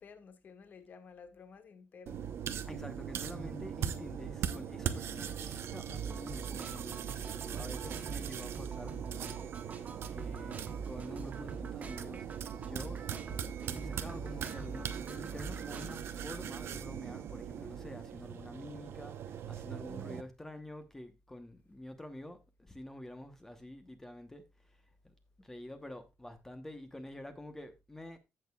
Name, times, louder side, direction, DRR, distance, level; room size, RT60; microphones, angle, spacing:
voice 1, 0.0-2.4, left 5 dB, 40° left, 1.2 m, -53 dB
sound 1, 2.1-20.2, right 9 dB, 65° right, 0.8 m, -40 dB
voice 2, 2.7-13.1 13.6-28.2, left 1 dB, 10° left, 1.0 m, -48 dB
sound 2, 3.1-16.0, right 5 dB, 35° right, 1.2 m, -45 dB
15.0 x 6.4 x 2.3 m
cardioid pair, 165°, 5 cm